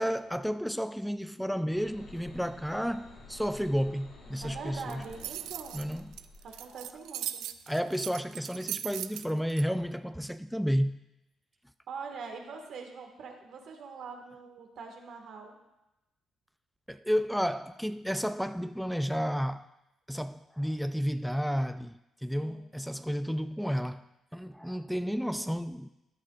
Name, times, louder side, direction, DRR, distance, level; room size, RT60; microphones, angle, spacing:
voice 1, 0.0-5.0 5.7-6.1 7.7-11.0 16.9-19.7 20.1-24.1 24.3-25.9, equal, ahead, 0.4 m, -32 dB
sound 1, 1.7-7.1, left 2 dB, 85° left, 3.7 m, -51 dB
voice 2, 4.4-5.8 6.4-7.5 11.9-15.6 22.4-22.7, right 5 dB, 70° right, 1.7 m, -43 dB
sound 2, 4.8-9.6, right 12 dB, 90° right, 0.4 m, -38 dB
14.0 x 10.0 x 2.4 m
cardioid pair, 75°, 0 cm